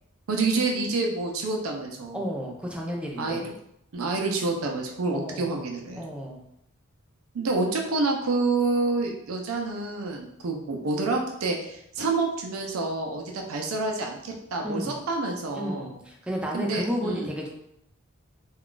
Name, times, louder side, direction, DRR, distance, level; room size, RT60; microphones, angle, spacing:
voice 1, 0.3-2.2 3.2-3.4 3.9-6.0 7.3-15.9 16.5-17.3, right 3 dB, 85° right, 1 dB, 0.5 m, -28 dB
voice 2, 2.1-3.5 5.1-5.6 5.9-6.4 14.6-15.0 15.5-17.5, equal, 5° right, -2 dB, 0.4 m, -32 dB
2.3 x 2.3 x 3.7 m, 0.76 s
head